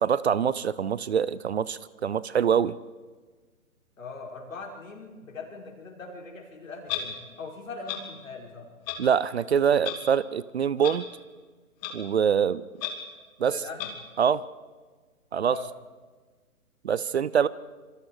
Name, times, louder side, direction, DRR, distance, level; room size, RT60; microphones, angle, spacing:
voice 1, 0.0-2.7 9.0-11.0 11.9-12.6 13.4-13.6 14.2-14.4 15.3-15.6 16.8-17.5, right 7 dB, 50° right, 20 dB, 0.7 m, -24 dB
voice 2, 4.0-8.7 13.4-13.9 15.4-15.7, left 4 dB, 60° left, 0 dB, 5.4 m, -41 dB
Clock, 6.9-7.0 7.9-8.0 8.9-9.0 9.8-9.9 10.8-10.9 11.8-11.9 12.8-12.9 13.8-13.9, left 13 dB, 25° left, 2.7 m, -31 dB
26.5 x 23.5 x 4.8 m, 1.4 s
figure-of-eight pair, 135°, 44 cm